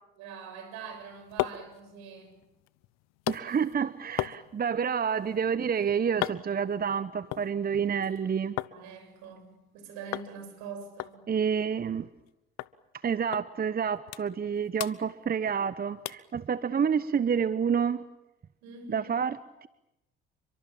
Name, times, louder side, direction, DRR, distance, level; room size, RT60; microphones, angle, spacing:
voice 1, 0.2-2.4 8.7-11.2 18.6-19.1, right 6 dB, 70° right, 8 dB, 7.1 m, -44 dB
sound 1, 0.9-8.8 9.1-9.8 10.1-10.3 10.6-10.7 11.0-12.3 12.6-12.7 13.3-13.5 13.8-14.5 14.8-15.7 16.1-16.3 16.8-16.9, left 17 dB, 60° left, 1.0 m, -38 dB
voice 2, 3.3-8.5 11.3-12.1 13.0-18.0 18.9-19.7, right 7 dB, 30° right, 15 dB, 1.0 m, -29 dB
29.5 x 24.0 x 7.4 m, 0.94 s
hypercardioid pair, 55°, 29 cm